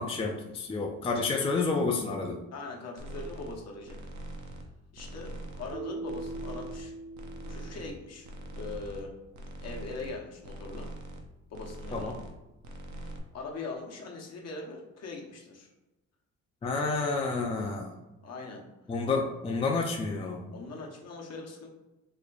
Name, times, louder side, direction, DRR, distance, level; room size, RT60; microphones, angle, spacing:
voice 1, 0.0-2.4 11.9-12.2 16.6-17.9 18.9-20.5, left 3 dB, 20° left, 1 dB, 0.4 m, -30 dB
voice 2, 2.5-4.0 4.9-6.9 7.4-8.3 8.6-9.1 9.6-10.9 11.5-12.1 13.0-15.7 18.2-18.6 20.5-21.7, left 3 dB, 55° left, 0 dB, 0.9 m, -41 dB
sound 1, 3.0-3.6 3.9-4.7 5.0-5.8 6.1-6.9 7.1-7.9 8.2-9.1 9.3-10.1 10.4-11.3 11.5-12.4 12.6-13.2, right 1 dB, 70° right, 0.6 m, -42 dB
Keyboard (musical), 5.7-8.6, right 2 dB, 25° right, 0.7 m, -42 dB
3.1 x 2.2 x 3.8 m, 1.0 s
cardioid pair, 90°, 30 cm